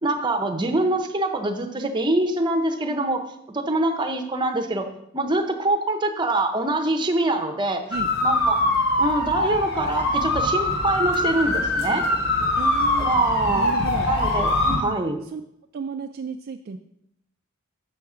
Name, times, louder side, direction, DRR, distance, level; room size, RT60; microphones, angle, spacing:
voice 1, 0.0-3.2 3.5-4.9 5.1-7.8 8.2-8.6 9.0-12.1 13.0-13.7 14.1-14.5 14.8-15.2, right 2 dB, 20° right, 4 dB, 0.7 m, -24 dB
sound 1, 7.9-14.8, left 1 dB, 50° left, 1.3 m, -23 dB
voice 2, 12.6-13.1 13.5-14.1 14.6-15.0 15.3-15.4 15.7-16.8, right 5 dB, 45° right, 5 dB, 0.3 m, -33 dB
6.3 x 5.8 x 4.9 m, 0.78 s
head